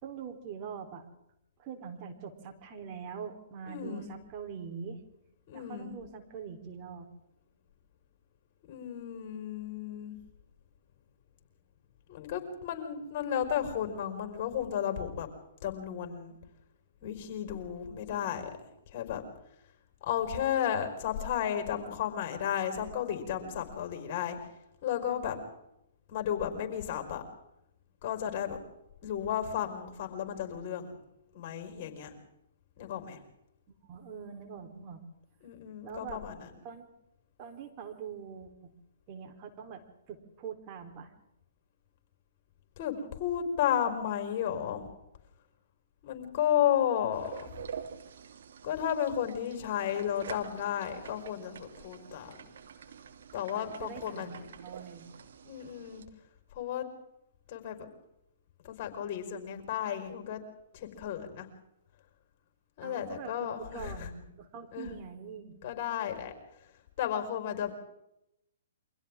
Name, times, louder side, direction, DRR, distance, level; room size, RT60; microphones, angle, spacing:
voice 1, 0.0-1.1 1.6-5.0 5.5-7.1 18.1-18.4 33.8-35.0 35.8-36.2 36.6-36.9 37.4-38.7 39.1-41.1 53.6-55.1 62.8-63.3 63.7-65.6, right 7 dB, 35° right, 4 dB, 3.9 m, -43 dB
voice 2, 3.7-4.1 5.5-6.0 8.6-10.2 12.1-15.3 15.6-16.3 17.0-18.5 18.9-19.2 20.0-24.4 24.8-25.4 26.1-27.2 28.0-28.6 29.0-31.0 31.3-32.1 32.8-33.2 35.4-36.5 42.8-44.8 46.0-47.5 48.6-52.3 53.3-54.5 55.4-56.0 56.5-56.9 57.5-57.9 58.6-60.4 60.7-61.5 62.8-64.1 64.7-64.9 65.6-66.3 67.0-67.7, left 9 dB, 40° left, 5 dB, 5.2 m, -33 dB
sound 1, 47.1-56.1, right 7 dB, 60° right, 2.7 m, -47 dB
29.5 x 24.5 x 3.8 m, 0.83 s
figure-of-eight pair, 125°, 0 cm